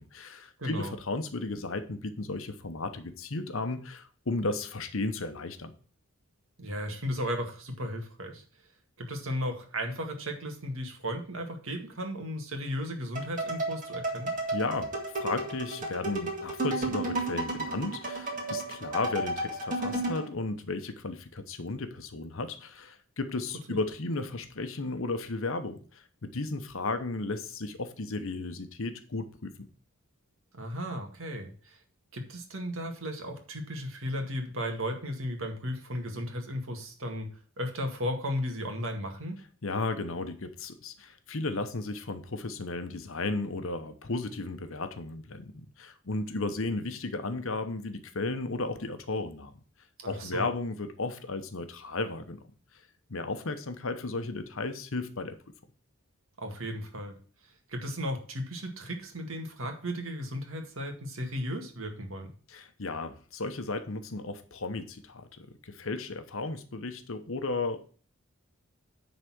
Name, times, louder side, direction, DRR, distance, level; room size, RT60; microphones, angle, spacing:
voice 1, 0.0-5.7 14.5-29.5 39.6-49.5 50.1-52.4 53.1-55.4 62.5-67.8, left 3 dB, 65° left, 1.0 m, -34 dB
voice 2, 0.6-0.9 6.6-8.4 9.0-14.3 23.7-23.8 30.5-31.8 32.1-37.3 37.6-39.4 50.0-50.5 56.4-57.2 57.7-62.3, equal, 65° right, 1.9 m, -35 dB
sound 1, 13.2-20.3, right 2 dB, 40° right, 1.9 m, -33 dB
10.0 x 4.1 x 6.1 m
head